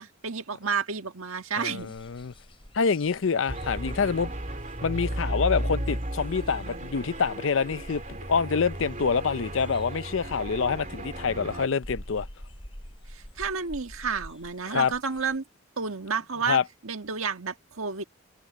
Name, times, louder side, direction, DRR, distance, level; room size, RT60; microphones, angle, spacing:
voice 1, 0.0-1.9 13.1-15.4 15.8-18.0, right 5 dB, 80° right, 1.6 m, -31 dB
voice 2, 1.6-2.3 2.7-4.3 4.8-8.0 8.3-12.3 14.7-14.9 16.5-16.6, left 5 dB, 65° left, 0.5 m, -26 dB
sound 1, 1.8-15.4, equal, 25° left, 3.3 m, -49 dB
sound 2, 3.5-11.7, right 1 dB, 35° right, 3.2 m, -34 dB
head